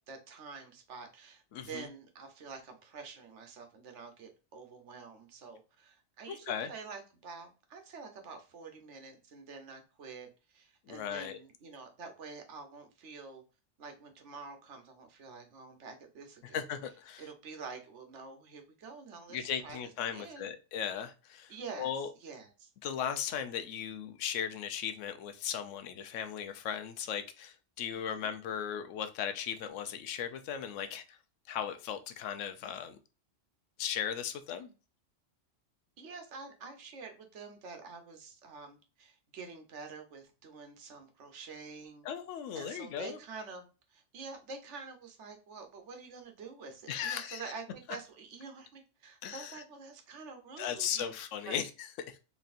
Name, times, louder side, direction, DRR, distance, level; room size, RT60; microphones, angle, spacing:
voice 1, 0.1-13.4 13.8-16.6 17.2-19.8 20.1-20.5 21.5-21.9 22.2-22.7 27.9-28.3 36.0-42.1 42.5-51.1 51.4-51.6, right 4 dB, 70° right, 1.2 m, -47 dB
voice 2, 1.5-1.9 6.3-6.7 10.9-11.4 16.4-17.3 19.3-21.5 21.8-22.1 22.8-31.2 31.5-33.0 33.8-34.7 42.0-43.2 46.9-47.4 49.2-49.6 50.6-52.2, left 8 dB, 80° left, 0.9 m, -37 dB
4.0 x 3.2 x 2.5 m
omnidirectional pair, 1.3 m